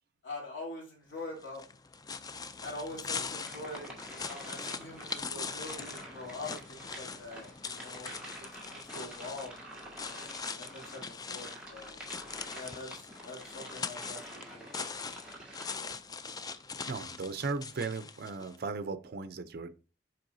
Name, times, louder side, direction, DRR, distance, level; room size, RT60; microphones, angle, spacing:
voice 1, 0.2-1.6 2.6-9.6 10.0-12.0 12.5-14.6 15.0-15.1 15.7-15.9, left 2 dB, 70° left, 3.1 m, -44 dB
sound 1, 1.4-18.6, left 5 dB, 20° left, 0.3 m, -42 dB
sound 2, 3.4-15.8, right 1 dB, 5° right, 1.7 m, -49 dB
voice 2, 16.8-19.7, right 4 dB, 55° right, 0.5 m, -37 dB
7.6 x 4.7 x 2.6 m
head